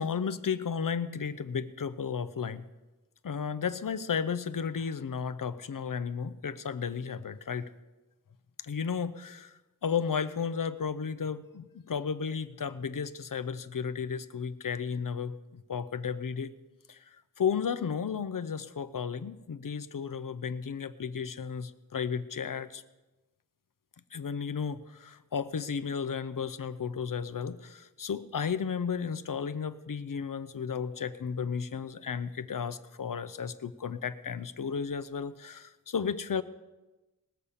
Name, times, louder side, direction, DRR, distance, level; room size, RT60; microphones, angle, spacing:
voice 1, 0.0-2.6 3.2-7.7 8.6-16.5 16.9-17.0 17.4-22.8 24.1-36.4, left 6 dB, 70° left, 12 dB, 0.7 m, -33 dB
19.5 x 6.7 x 5.6 m, 1.1 s
cardioid pair, 45°, 34 cm